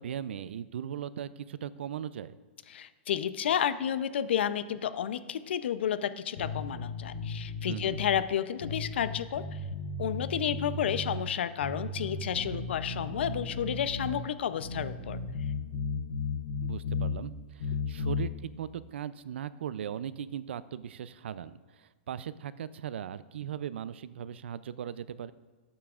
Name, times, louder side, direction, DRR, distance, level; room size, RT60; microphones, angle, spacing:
voice 1, 0.0-2.4 7.7-8.0 16.6-25.3, right 9 dB, 70° right, 17 dB, 0.4 m, -38 dB
voice 2, 2.7-9.6 10.0-15.2, left 9 dB, 70° left, 13 dB, 0.5 m, -31 dB
sound 1, 6.3-8.2 8.6-11.2 11.6-14.2 14.6-17.2 17.6-18.3, left 3 dB, 85° left, 3.0 m, -35 dB
12.5 x 8.6 x 2.4 m, 1.4 s
supercardioid pair, 180°, 6 cm